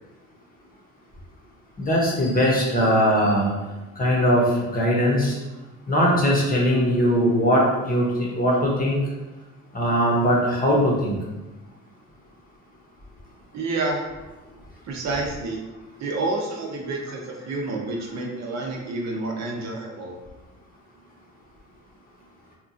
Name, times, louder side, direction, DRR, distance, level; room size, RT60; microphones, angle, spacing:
voice 1, 1.9-3.5 4.0-5.3 5.9-8.1 8.3-9.0 9.7-11.2, equal, 30° left, -3 dB, 0.9 m, -20 dB
voice 2, 13.5-14.0 14.8-15.6 16.0-20.2, right 2 dB, 60° right, 0 dB, 0.6 m, -29 dB
2.9 x 2.4 x 2.5 m, 1.1 s
cardioid pair, 90°, 30 cm